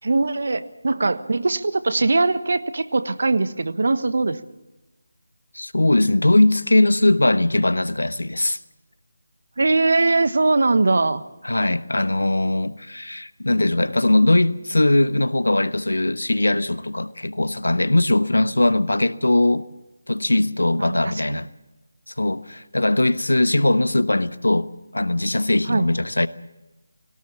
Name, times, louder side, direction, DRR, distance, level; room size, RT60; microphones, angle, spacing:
voice 1, 0.0-4.4 9.6-11.2 20.7-21.0 21.3-21.4 25.7-25.9, right 3 dB, 65° right, 1.3 m, -21 dB
voice 2, 5.5-8.6 11.4-19.7 20.1-21.5 22.2-24.7 24.9-26.3, left 2 dB, 85° left, 1.1 m, -20 dB
20.5 x 18.0 x 7.2 m
figure-of-eight pair, 160°, 0 cm